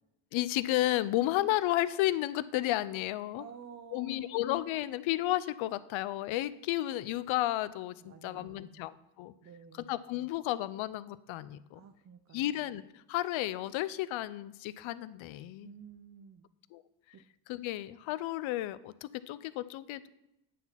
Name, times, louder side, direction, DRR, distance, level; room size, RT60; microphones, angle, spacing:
voice 1, 0.3-3.4 3.9-9.3 9.9-11.8 12.3-15.7 16.7-16.8 17.5-20.1, left 15 dB, 80° left, 16 dB, 0.6 m, -32 dB
voice 2, 3.4-4.4 8.0-8.9 9.4-10.0 11.7-12.7 15.6-16.5 17.1-17.2, right 7 dB, 35° right, 7 dB, 0.6 m, -52 dB
9.2 x 4.1 x 5.7 m, 0.88 s
cardioid pair, 85°, 47 cm